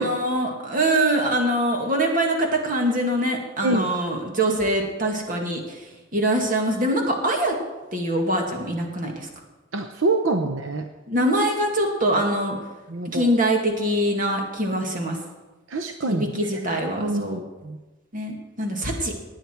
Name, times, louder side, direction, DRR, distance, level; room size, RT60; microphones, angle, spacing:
voice 1, 0.0-7.6 7.9-9.3 11.1-12.6 13.1-15.2 16.1-17.4 18.1-19.1, right 1 dB, 45° right, 1 dB, 2.2 m, -23 dB
voice 2, 9.7-10.9 12.9-13.3 15.7-16.2 17.0-17.8, right 2 dB, 80° right, 6 dB, 0.8 m, -25 dB
19.0 x 8.8 x 4.6 m, 1.2 s
head